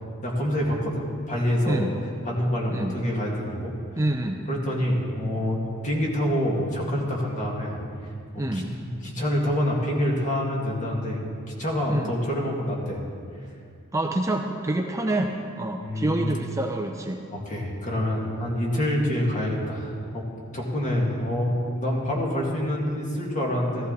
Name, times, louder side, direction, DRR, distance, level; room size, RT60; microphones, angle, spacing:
voice 1, 0.2-1.9 2.2-3.7 4.5-7.8 8.3-11.2 11.6-13.0 15.8-16.3 17.3-20.3 20.5-23.9, equal, 35° left, -2 dB, 2.3 m, -26 dB
voice 2, 4.0-4.4 8.4-8.7 11.9-12.1 13.9-17.2, right 1 dB, 15° right, 3 dB, 0.5 m, -27 dB
14.5 x 14.0 x 4.1 m, 2.4 s
head